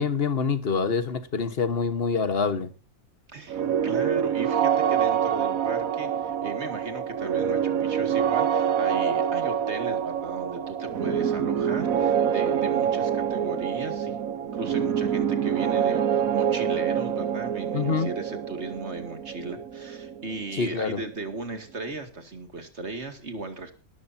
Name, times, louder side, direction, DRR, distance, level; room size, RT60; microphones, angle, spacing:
voice 1, 0.0-2.7 17.7-18.1 20.6-21.0, left 5 dB, 45° left, 1.5 m, -26 dB
voice 2, 3.3-14.2 14.5-23.7, right 3 dB, 50° right, 2.5 m, -37 dB
sound 1, 3.5-21.1, right 8 dB, 70° right, 1.4 m, -26 dB
19.0 x 13.0 x 2.7 m
omnidirectional pair, 1.5 m